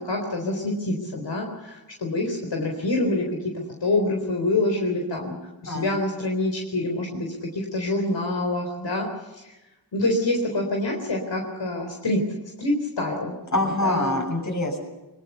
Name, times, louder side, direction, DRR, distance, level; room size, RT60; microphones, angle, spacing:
voice 1, 0.0-3.2 3.8-5.4 5.6-9.1 9.9-12.2 12.6-13.4 13.8-14.2, left 2 dB, 70° left, 2 dB, 4.1 m, -26 dB
voice 2, 13.5-14.8, left 1 dB, 40° left, 3 dB, 7.0 m, -25 dB
22.5 x 22.0 x 7.0 m, 1.0 s
wide cardioid pair, 75°, 44 cm